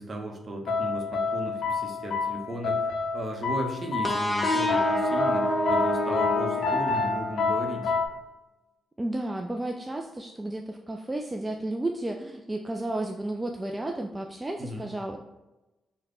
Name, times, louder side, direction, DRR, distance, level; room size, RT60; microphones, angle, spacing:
voice 1, 0.0-7.9 14.6-14.9, right 1 dB, 45° right, 2 dB, 0.7 m, -35 dB
sound 1, 0.7-8.1, left 4 dB, 70° left, 0.4 m, -28 dB
sound 2, 4.0-7.6, equal, 5° left, 0.7 m, -28 dB
voice 2, 9.0-15.2, right 1 dB, 20° right, 2 dB, 0.3 m, -32 dB
3.2 x 2.2 x 3.7 m, 1.0 s
hypercardioid pair, 45°, 0 cm